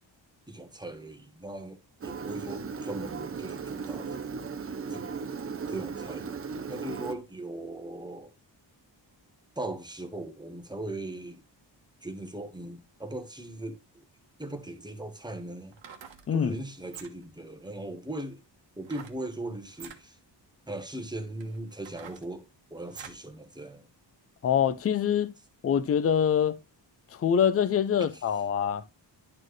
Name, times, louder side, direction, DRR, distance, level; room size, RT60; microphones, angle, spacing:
voice 1, 0.5-4.2 4.9-5.1 5.7-6.3 6.7-8.3 9.6-11.4 12.0-14.0 14.4-15.7 16.3-18.4 18.8-20.2 20.7-23.9 28.1-28.2, right 1 dB, 10° right, 1.0 m, -39 dB
Engine, 2.0-7.2, right 5 dB, 30° right, 0.6 m, -36 dB
sound 1, 15.6-16.3 16.8-17.4 18.8-19.2 19.7-20.0 20.7-20.8 21.4-23.3 23.7-23.8, right 7 dB, 90° right, 1.2 m, -47 dB
voice 2, 24.4-25.3 25.6-26.6 27.2-28.8, left 8 dB, 35° left, 0.4 m, -24 dB
11.0 x 4.3 x 3.1 m
wide cardioid pair, 165°, 44 cm